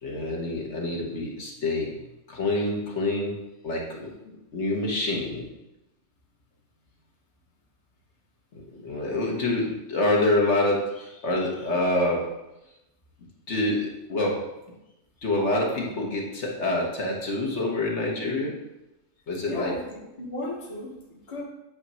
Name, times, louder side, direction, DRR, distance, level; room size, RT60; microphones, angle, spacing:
voice 1, 0.0-2.0 2.3-3.4 3.6-5.4 8.5-12.3 13.5-14.5 15.2-18.6 19.3-19.8, left 2 dB, 55° left, -2 dB, 1.4 m, -27 dB
voice 2, 19.5-21.4, left 1 dB, 25° left, -2 dB, 1.0 m, -35 dB
8.6 x 2.9 x 5.5 m, 0.94 s
omnidirectional pair, 1.4 m